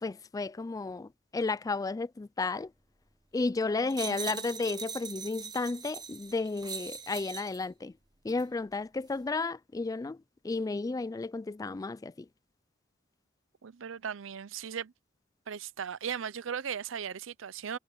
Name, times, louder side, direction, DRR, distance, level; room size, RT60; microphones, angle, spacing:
voice 1, 0.0-2.7 3.3-7.9 8.2-12.3, left 3 dB, 20° left, 0.3 m, -33 dB
sound 1, 3.9-7.7 8.3-8.5, right 6 dB, 20° right, 1.2 m, -41 dB
voice 2, 4.1-4.4 13.6-14.9 15.5-17.8, right 7 dB, 85° right, 0.6 m, -37 dB
head